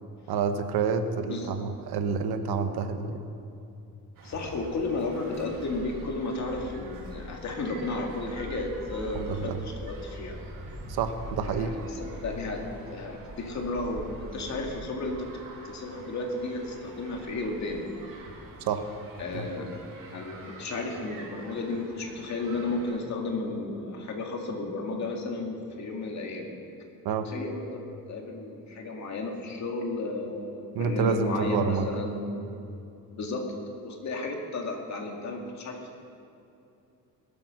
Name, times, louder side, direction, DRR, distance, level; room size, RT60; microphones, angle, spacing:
voice 1, 0.3-3.3 9.1-9.6 10.9-11.7 18.7-18.8 19.3-19.5 27.0-27.3 30.7-31.9, right 6 dB, 85° right, 8 dB, 1.1 m, -28 dB
voice 2, 4.2-10.4 11.4-15.3 15.6-17.8 19.2-19.7 20.1-26.5 27.2-32.5 33.1-33.6 33.8-35.9, left 2 dB, 45° left, 1 dB, 2.2 m, -33 dB
sound 1, 4.2-23.0, right 2 dB, 60° right, 2.6 m, -46 dB
sound 2, 4.8-12.4, left 1 dB, 10° right, 1.6 m, -44 dB
21.0 x 8.6 x 6.4 m, 2.7 s
cardioid pair, 170°, 37 cm